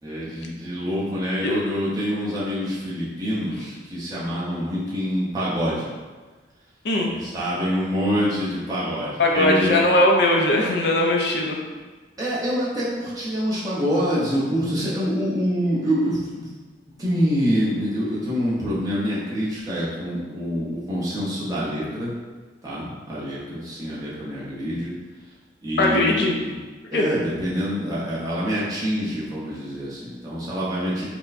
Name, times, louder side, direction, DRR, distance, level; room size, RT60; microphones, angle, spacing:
voice 1, 0.0-5.9 7.0-9.7 12.2-16.5 17.0-22.1 22.6-24.9 25.6-26.6 26.9-31.1, equal, 20° right, -8 dB, 0.9 m, -26 dB
voice 2, 9.2-11.6 25.8-26.4 26.9-27.1, left 1 dB, 65° left, 0 dB, 0.5 m, -19 dB
4.4 x 2.2 x 2.5 m, 1.3 s
head